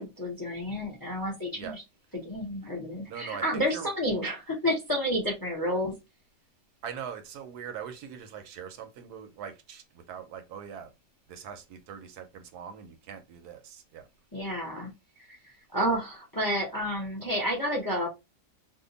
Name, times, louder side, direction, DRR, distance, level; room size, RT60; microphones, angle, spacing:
voice 1, 0.0-1.8 2.2-5.9 14.3-14.9 15.3-15.4 15.7-18.1, equal, 20° left, 0.6 m, -30 dB
voice 2, 3.1-3.9 6.8-10.9 11.3-14.1, right 8 dB, 80° right, 1.1 m, -42 dB
2.7 x 2.4 x 3.8 m
omnidirectional pair, 1.7 m